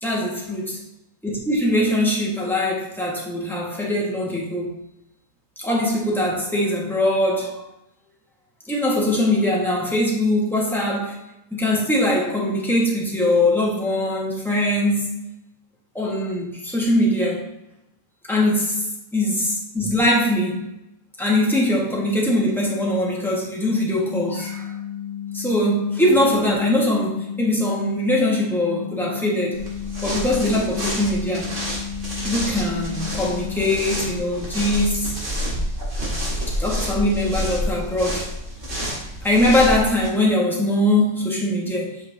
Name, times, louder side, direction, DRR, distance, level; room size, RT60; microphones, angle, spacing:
voice 1, 0.0-0.8 1.2-4.7 5.6-7.6 8.7-11.2 11.5-15.1 15.9-17.4 18.3-18.8 19.1-20.6 21.2-24.7 25.3-29.6 30.0-31.5 32.2-35.1 36.5-38.3 39.2-42.0, left 1 dB, ahead, -4 dB, 1.5 m, -21 dB
sound 1, 24.1-34.1, left 9 dB, 85° left, 1.7 m, -33 dB
sound 2, 29.5-40.1, equal, 45° right, 2.4 m, -29 dB
8.0 x 5.6 x 2.9 m, 0.87 s
omnidirectional pair, 1.8 m